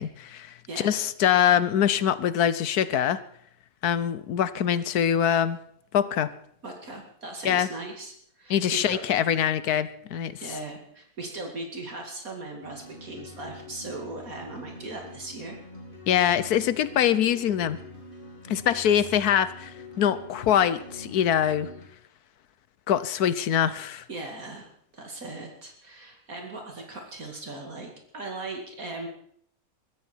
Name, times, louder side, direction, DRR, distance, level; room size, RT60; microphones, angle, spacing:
voice 1, 0.0-3.2 3.8-5.6 5.9-6.3 7.4-7.7 8.5-10.4 16.1-17.8 18.5-21.7 22.9-24.0, left 9 dB, 80° left, 15 dB, 1.4 m, -24 dB
voice 2, 0.7-1.0 6.6-9.0 10.4-15.6 19.0-19.1 24.1-24.7 24.9-29.1, right 2 dB, 65° right, 2 dB, 2.9 m, -38 dB
sound 1, 12.6-21.9, left 2 dB, 35° left, 3.0 m, -45 dB
22.0 x 14.0 x 4.6 m, 0.65 s
omnidirectional pair, 1.6 m